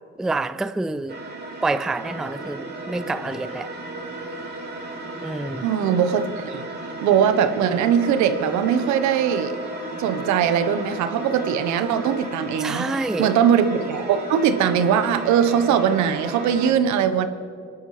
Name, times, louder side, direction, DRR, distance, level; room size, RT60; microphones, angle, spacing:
voice 1, 0.2-1.2 1.6-3.7 5.2-5.7 12.6-13.3, right 3 dB, ahead, 0.4 m, -27 dB
sound 1, 1.1-16.7, right 2 dB, 35° right, 3.3 m, -35 dB
voice 2, 5.6-6.6 7.0-9.5 10.0-12.9 13.2-17.3, right 8 dB, 70° right, 1.1 m, -20 dB
23.5 x 12.0 x 3.3 m
supercardioid pair, 70°, 30 cm